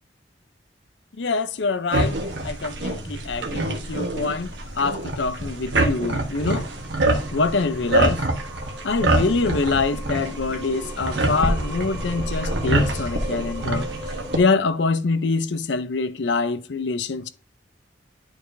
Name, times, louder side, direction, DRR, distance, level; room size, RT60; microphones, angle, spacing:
voice 1, 1.2-2.2 2.4-6.7 7.3-8.2 8.8-13.9 14.3-17.3, left 4 dB, 75° left, 0.6 m, -25 dB
sound 1, 1.9-14.4, right 2 dB, 75° right, 1.2 m, -25 dB
Singing, 6.2-14.4, right 1 dB, 20° right, 1.9 m, -39 dB
10.5 x 4.7 x 2.6 m
head